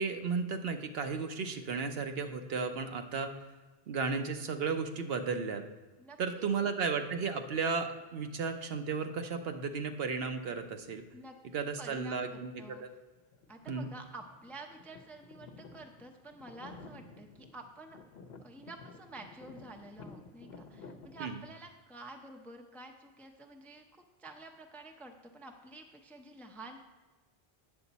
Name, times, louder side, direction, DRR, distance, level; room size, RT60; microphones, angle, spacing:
voice 1, 0.0-3.3 3.9-5.6 6.2-11.0 11.5-12.9 13.7-13.9 21.2-21.4, right 5 dB, 70° right, 6 dB, 0.9 m, -34 dB
voice 2, 6.0-6.5 11.1-12.8 13.5-18.0 18.4-23.8 24.2-26.9, right 2 dB, ahead, 4 dB, 0.4 m, -50 dB
sound 1, 13.2-13.8 14.1-21.2, left 4 dB, 75° left, 0.9 m, -52 dB
8.9 x 7.0 x 4.0 m, 1.2 s
omnidirectional pair, 1.1 m